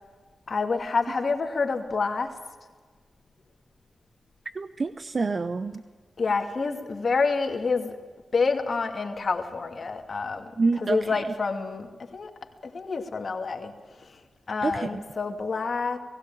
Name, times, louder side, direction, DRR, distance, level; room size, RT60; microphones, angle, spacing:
voice 1, 0.5-2.4 6.2-7.9 8.3-10.5 10.8-12.3 12.6-13.7 14.5-16.0, left 4 dB, 60° left, 4 dB, 2.5 m, -28 dB
voice 2, 4.5-5.8 10.6-11.2 14.6-14.9, right 3 dB, 55° right, 11 dB, 0.7 m, -27 dB
19.5 x 16.0 x 8.8 m, 1.5 s
cardioid pair, 50°, 0 cm